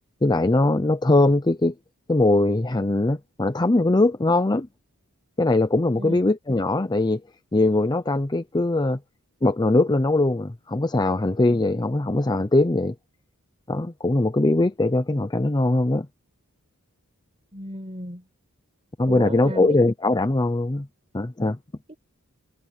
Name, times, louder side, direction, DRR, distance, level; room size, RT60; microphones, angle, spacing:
voice 1, 0.2-1.7 2.1-4.7 5.4-7.2 7.5-9.0 9.4-12.9 13.7-16.1 19.0-20.9 21.1-21.6, left 2 dB, 20° left, 0.6 m, -21 dB
voice 2, 17.5-18.2 19.1-19.8 21.9-22.0, right 1 dB, 30° right, 5.2 m, -34 dB
head